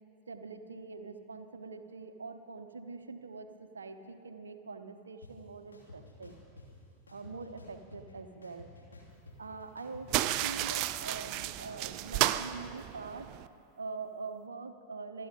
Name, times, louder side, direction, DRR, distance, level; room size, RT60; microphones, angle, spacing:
voice 1, 0.3-6.4 7.1-8.7 9.4-13.3 13.8-15.3, right 4 dB, 75° right, 8 dB, 0.9 m, -44 dB
sound 1, 5.2-5.3 5.7-6.7 7.1-8.1 8.4-10.7, left 2 dB, 75° left, 3.0 m, -52 dB
sound 2, 10.1-13.5, right 14 dB, 40° right, 0.4 m, -32 dB
25.5 x 9.4 x 5.3 m, 2.5 s
figure-of-eight pair, 90°, 0 cm